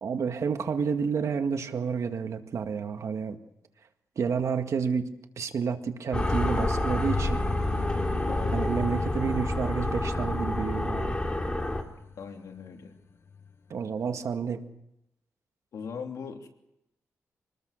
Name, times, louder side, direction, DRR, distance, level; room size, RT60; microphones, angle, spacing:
voice 1, 0.0-3.4 4.2-5.0 5.4-7.4 8.5-11.2 13.7-14.6, right 6 dB, 65° right, 6 dB, 2.0 m, -30 dB
sound 1, 6.1-14.2, left 6 dB, 50° left, 1.2 m, -41 dB
sound 2, 6.1-11.8, left 1 dB, 20° left, 3.2 m, -28 dB
voice 2, 8.3-8.7 12.2-12.9 15.7-16.5, left 6 dB, 75° left, 3 dB, 3.1 m, -40 dB
25.0 x 20.0 x 6.6 m, 0.84 s
cardioid pair, 90°, 6 cm